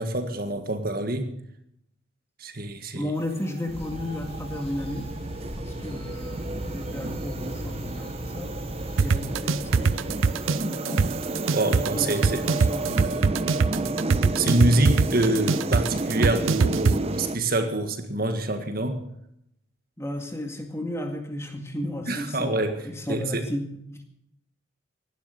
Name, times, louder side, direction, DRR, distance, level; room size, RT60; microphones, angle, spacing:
voice 1, 0.0-1.3 2.4-3.1 11.5-12.4 14.3-19.0 22.1-22.8 23.1-23.4, right 1 dB, 45° right, 7 dB, 1.7 m, -26 dB
voice 2, 2.9-5.1 5.6-8.5 9.0-9.9 10.6-11.1 11.8-14.0 20.0-24.0, left 1 dB, 15° left, 4 dB, 2.0 m, -34 dB
sound 1, 3.1-17.4, right 2 dB, 30° right, 0.8 m, -32 dB
sound 2, 3.7-10.3, equal, 30° left, 5.2 m, -37 dB
sound 3, 9.0-16.9, right 4 dB, 85° right, 0.6 m, -21 dB
17.0 x 11.5 x 6.6 m, 0.75 s
head